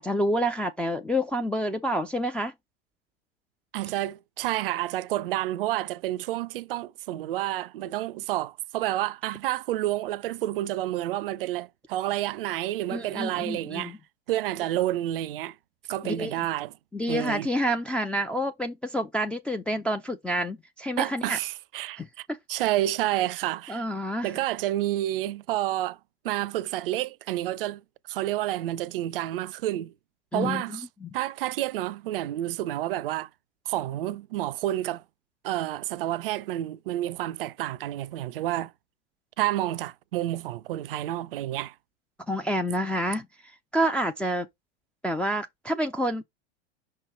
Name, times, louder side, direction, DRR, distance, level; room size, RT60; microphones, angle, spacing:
voice 1, 0.0-2.5 12.9-14.0 16.0-16.3 16.9-21.4 22.0-22.7 23.7-24.3 30.3-31.2 42.3-43.3 43.7-44.5 45.0-46.2, equal, 5° left, 0.3 m, -28 dB
voice 2, 3.7-14.0 14.3-15.6 15.9-16.7 17.1-17.5 21.0-23.8 24.2-26.0 26.2-27.8 28.1-29.9 30.3-30.8 31.1-33.3 33.7-35.0 35.4-38.7 39.4-41.7, right 14 dB, 55° right, 0.5 m, -29 dB
5.7 x 4.4 x 4.4 m
figure-of-eight pair, 90°, 34 cm